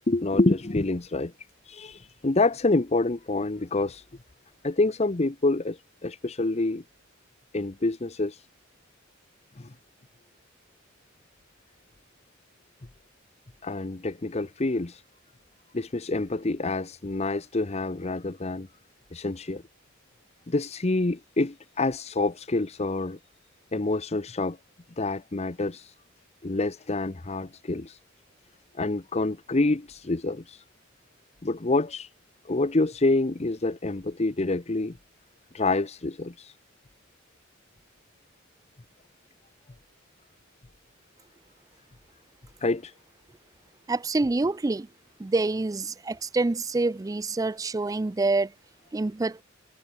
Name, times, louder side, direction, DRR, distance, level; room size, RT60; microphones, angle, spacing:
voice 1, 0.1-1.3 1.6-4.1 4.6-6.8 7.5-8.5 9.6-9.7 13.6-15.0 15.7-18.7 19.1-19.6 20.5-23.2 23.7-24.6 25.0-26.0 26.4-28.0 28.7-30.6 31.4-32.1 32.4-35.0 35.5-36.6 42.6-42.9, left 2 dB, 30° left, 0.8 m, -27 dB
voice 2, 43.9-44.9 45.2-48.5 48.9-49.4, right 3 dB, 15° right, 0.3 m, -26 dB
head